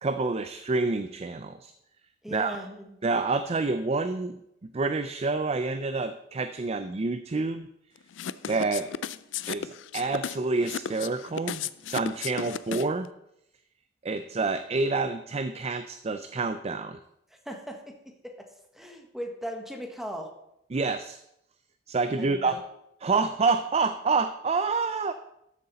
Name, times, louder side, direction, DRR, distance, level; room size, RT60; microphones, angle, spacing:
voice 1, 0.0-1.7 2.3-2.6 3.0-7.7 8.5-8.9 9.5-11.6 11.9-13.1 14.0-17.0 20.7-21.2 21.9-22.6 23.0-25.1, right 3 dB, 35° right, 10 dB, 0.5 m, -28 dB
voice 2, 2.2-2.9 17.4-18.0 18.2-18.5 18.7-20.3 22.2-22.6, equal, ahead, 2 dB, 1.4 m, -38 dB
sound 1, 8.1-13.1, left 8 dB, 75° left, 0.4 m, -34 dB
13.0 x 7.7 x 4.1 m, 0.80 s
head